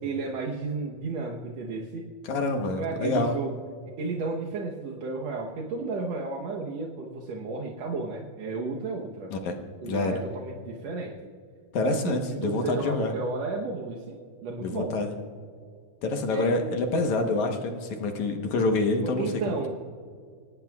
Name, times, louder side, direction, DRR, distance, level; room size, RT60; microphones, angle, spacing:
voice 1, 0.0-2.1 2.7-3.6 4.0-9.3 9.8-11.3 11.8-15.0 16.3-16.5 19.0-19.8, right 3 dB, 65° right, -1 dB, 1.8 m, -33 dB
voice 2, 2.3-3.4 9.3-9.5 9.8-10.2 11.7-13.1 14.6-15.1 16.0-19.3, left 2 dB, 65° left, 4 dB, 2.3 m, -27 dB
25.0 x 18.0 x 2.4 m, 2.1 s
omnidirectional pair, 4.0 m